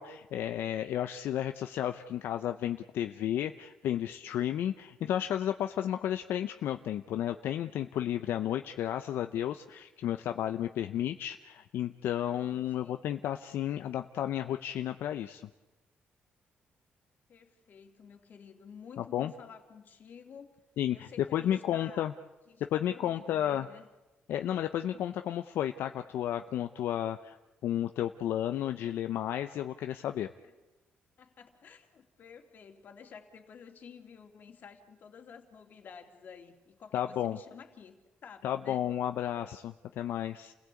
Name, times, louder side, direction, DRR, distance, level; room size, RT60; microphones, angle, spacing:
voice 1, 0.0-15.4 19.0-19.3 20.8-22.1 22.7-23.7 24.3-27.4 27.6-30.3 36.9-37.4 38.4-40.5, left 11 dB, 85° left, 8 dB, 0.7 m, -32 dB
voice 2, 12.3-13.0 17.3-20.6 20.9-22.2 22.5-23.9 30.4-30.5 31.2-37.9 38.2-38.9, left 6 dB, 55° left, 5 dB, 2.8 m, -52 dB
29.0 x 17.0 x 8.4 m, 1.1 s
cardioid pair, 105°, 4 cm